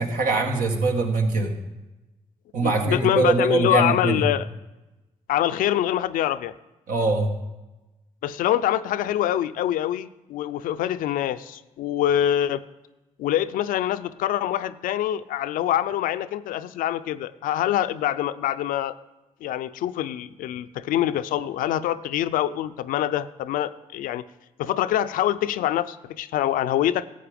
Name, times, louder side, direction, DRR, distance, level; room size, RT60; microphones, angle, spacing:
voice 1, 0.0-1.5 2.5-4.3 6.9-7.3, right 3 dB, 80° right, 2 dB, 1.7 m, -22 dB
voice 2, 2.6-4.5 5.3-6.5 8.2-12.6 13.2-19.0 19.4-24.2 24.6-27.0, left 12 dB, 85° left, 13 dB, 0.4 m, -25 dB
12.5 x 8.2 x 5.1 m, 1.0 s
cardioid pair, 65°, 14 cm